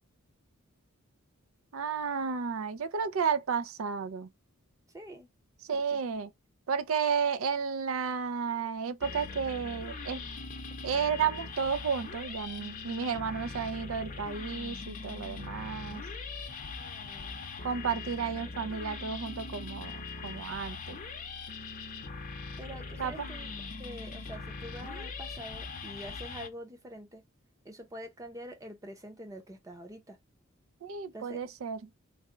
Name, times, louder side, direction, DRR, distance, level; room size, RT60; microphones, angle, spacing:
voice 1, 1.7-4.3 5.7-6.3 6.7-10.2 10.8-16.0 17.6-21.0 23.0-23.1 30.8-31.8, right 6 dB, 70° right, 0.4 m, -32 dB
voice 2, 4.9-5.3 5.7-6.0 16.8-17.7 22.6-27.2 27.6-30.2 31.1-31.4, equal, 15° right, 0.6 m, -46 dB
sound 1, 9.0-26.5, left 4 dB, 40° left, 0.6 m, -41 dB
3.3 x 2.2 x 3.7 m
head